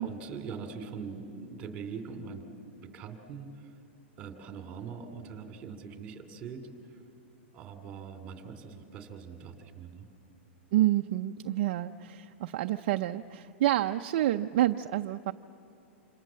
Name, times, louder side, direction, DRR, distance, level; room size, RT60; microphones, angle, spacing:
voice 1, 0.0-2.5 2.8-3.8 4.2-7.0 7.5-10.1, right 5 dB, 20° right, 6 dB, 2.9 m, -42 dB
voice 2, 10.7-15.3, right 14 dB, 45° right, 6 dB, 0.6 m, -28 dB
28.0 x 27.5 x 7.6 m, 2.6 s
supercardioid pair, 170°, 7 cm